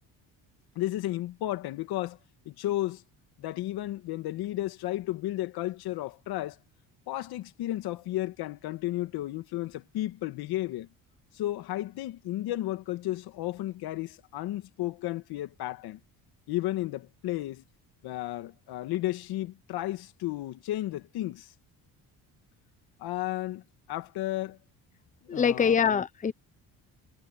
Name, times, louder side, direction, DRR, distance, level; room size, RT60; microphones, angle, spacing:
voice 1, 0.8-2.2 2.5-3.0 3.4-6.6 7.1-10.9 11.3-16.0 16.5-17.6 18.0-21.5 23.0-24.6 25.2-25.8, left 15 dB, 80° left, 2.1 m, -33 dB
voice 2, 25.3-26.3, left 7 dB, 20° left, 0.8 m, -24 dB
cardioid pair, 110°, 37 cm